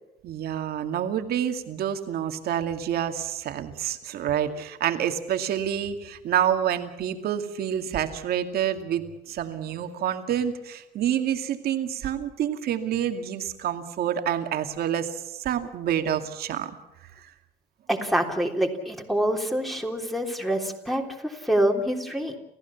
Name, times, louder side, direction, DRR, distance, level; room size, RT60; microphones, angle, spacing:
voice 1, 0.2-16.7 17.2-17.3, right 9 dB, 65° right, 7 dB, 2.3 m, -28 dB
voice 2, 17.9-22.4, right 1 dB, ahead, 3 dB, 3.4 m, -26 dB
29.5 x 15.5 x 7.2 m, 0.93 s
cardioid pair, 110°, 17 cm